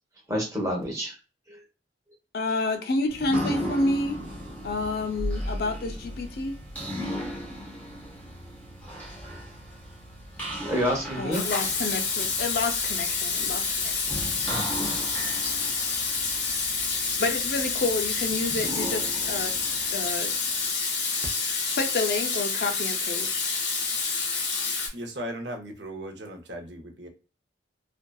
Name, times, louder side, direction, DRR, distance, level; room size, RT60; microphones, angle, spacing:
voice 1, 0.3-1.1 1.5-1.6 10.6-11.4 13.4-13.5 14.4-15.0, equal, 20° right, 0.8 m, -29 dB
voice 2, 2.3-4.2 4.6-6.6 11.2-14.2 14.8-14.9 17.2-19.5 19.9-20.3 21.8-23.5, left 2 dB, 60° left, 0.4 m, -29 dB
sound 1, 3.1-20.9, equal, 10° left, 0.6 m, -37 dB
Water tap faucet / Sink (filling or washing), 11.3-24.9, left 4 dB, 90° left, 0.7 m, -28 dB
voice 3, 24.2-27.1, right 1 dB, 80° right, 0.6 m, -38 dB
2.6 x 2.1 x 2.2 m
head